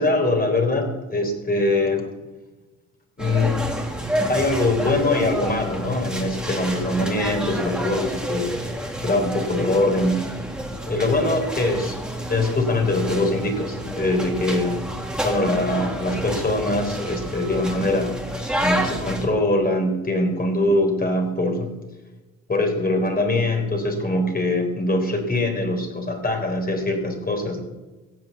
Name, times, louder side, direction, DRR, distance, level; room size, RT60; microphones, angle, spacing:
voice 1, 0.0-2.0 3.2-3.6 4.3-8.5 9.0-10.3 10.9-12.0 12.3-14.9 15.2-18.2 18.6-21.7 22.5-27.6, left 2 dB, 30° left, 4 dB, 4.0 m, -22 dB
sound 1, 3.2-19.3, right 1 dB, 5° right, 2.8 m, -29 dB
16.0 x 7.8 x 8.3 m, 1.1 s
cardioid pair, 90°, 30 cm